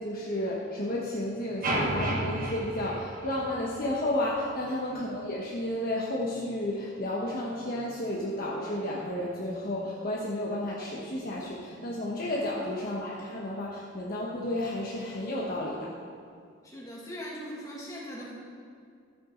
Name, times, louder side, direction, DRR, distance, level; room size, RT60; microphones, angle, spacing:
voice 1, 0.0-15.9, left 1 dB, 45° left, -4 dB, 1.2 m, -32 dB
sound 1, 1.6-3.9, right 1 dB, 45° right, 1.3 m, -31 dB
voice 2, 16.6-18.4, equal, 15° left, -5 dB, 2.2 m, -41 dB
13.5 x 8.3 x 3.9 m, 2.2 s
head